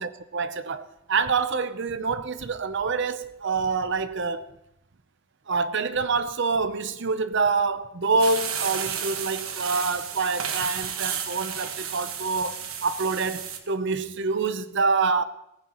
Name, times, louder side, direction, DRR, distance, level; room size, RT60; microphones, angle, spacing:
voice 1, 0.0-4.5 5.5-15.2, right 4 dB, 60° right, 0.8 m, -26 dB
sound 1, 8.2-13.6, right 7 dB, 80° right, 1.4 m, -32 dB
18.0 x 15.0 x 3.1 m
head